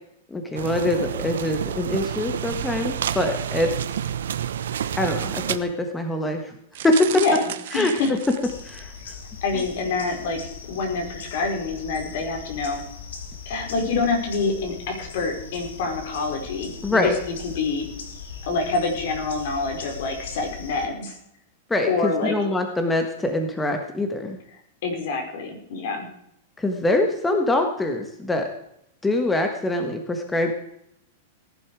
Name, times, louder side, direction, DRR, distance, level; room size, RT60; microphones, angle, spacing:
voice 1, 0.3-3.7 4.9-6.5 6.8-7.1 7.7-7.9 8.6-8.9 9.5-9.6 16.8-17.2 21.7-24.4 26.6-28.5 29.0-30.5, left 2 dB, 10° left, 4 dB, 1.5 m, -24 dB
sound 1, 0.6-5.6, right 9 dB, 90° right, 1.0 m, -29 dB
sound 2, 6.7-9.0 9.5-9.8 10.1-10.2, right 12 dB, 65° right, 1.3 m, -35 dB
voice 2, 7.1-7.5 7.7-8.1 9.4-10.4 10.7-12.8 13.4-17.9 18.5-21.2 21.9-22.3 24.8-26.1, left 4 dB, 60° left, 3 dB, 4.9 m, -26 dB
sound 3, 8.4-20.9, left 5 dB, 85° left, 3.1 m, -39 dB
18.5 x 11.0 x 4.9 m, 0.76 s
supercardioid pair, 150°, 0 cm